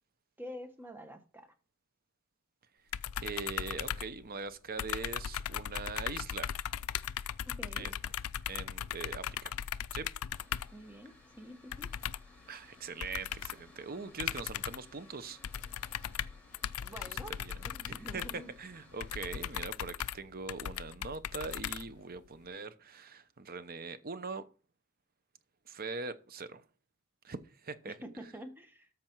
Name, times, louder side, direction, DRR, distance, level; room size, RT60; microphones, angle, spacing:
voice 1, 0.4-1.5 7.5-7.9 10.7-11.9 16.8-17.3 17.6-18.5 27.8-28.9, equal, 10° right, 1.3 m, -47 dB
sound 1, 2.9-4.5 4.8-10.8 11.7-12.4 13.0-13.7 14.2-14.9 15.4-22.3, left 10 dB, 70° left, 0.4 m, -38 dB
voice 2, 3.2-6.5 7.8-7.9 8.5-9.5 9.9-10.1 12.5-15.4 17.4-17.5 17.9-24.4 25.7-26.6 27.2-28.0, right 4 dB, 40° right, 0.8 m, -42 dB
Mechanical fan, 10.3-19.6, left 1 dB, 5° left, 4.5 m, -60 dB
13.5 x 5.2 x 4.6 m
head